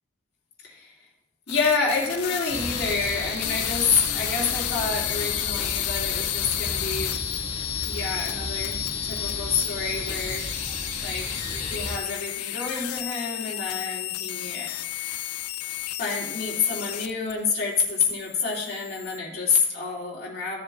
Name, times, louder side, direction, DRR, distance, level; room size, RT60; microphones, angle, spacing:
voice 1, 0.6-0.9 1.5-7.2 7.8-8.8 9.0-10.5 11.0-15.3 16.0-20.6, left 5 dB, 45° left, -5 dB, 2.7 m, -28 dB
sound 1, 1.5-17.3 17.6-19.2, left 14 dB, 85° left, 0.5 m, -32 dB
sound 2, 2.5-12.0, left 2 dB, 30° left, 2.0 m, -33 dB
15.0 x 7.3 x 2.4 m, 0.98 s
head